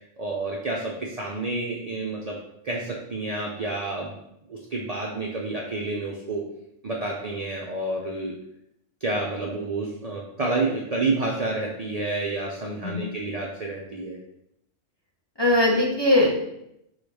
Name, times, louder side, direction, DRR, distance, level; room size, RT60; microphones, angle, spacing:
voice 1, 0.2-2.4 2.6-4.2 4.5-6.4 6.8-8.3 9.0-14.2, right 2 dB, 80° right, -2 dB, 0.3 m, -29 dB
voice 2, 15.4-16.4, left 1 dB, 30° left, -3 dB, 0.5 m, -20 dB
5.5 x 2.3 x 3.3 m, 0.81 s
omnidirectional pair, 1.3 m